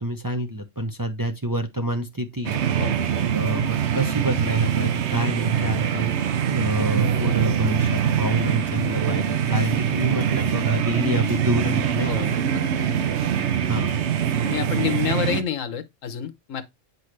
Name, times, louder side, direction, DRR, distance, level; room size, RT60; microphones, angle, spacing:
voice 1, 0.0-2.6 3.3-6.2 6.5-12.3 13.7-13.9, right 1 dB, 20° right, 0.6 m, -27 dB
sound 1, 2.4-15.4, right 8 dB, 65° right, 1.0 m, -23 dB
voice 2, 12.0-12.7 14.4-16.6, left 9 dB, 85° left, 1.3 m, -28 dB
8.4 x 4.6 x 3.2 m
omnidirectional pair, 1.3 m